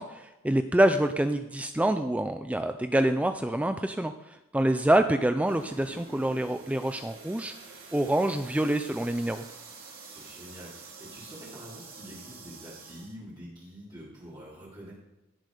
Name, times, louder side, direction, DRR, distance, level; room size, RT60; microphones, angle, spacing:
voice 1, 0.0-7.5 7.9-9.4, right 1 dB, 5° right, 8 dB, 0.4 m, -26 dB
voice 2, 4.5-5.1 10.0-14.9, equal, 25° right, -9 dB, 3.7 m, -46 dB
sound 1, 5.5-13.1, right 4 dB, 80° right, 4.5 m, -47 dB
17.0 x 8.1 x 5.0 m, 0.99 s
head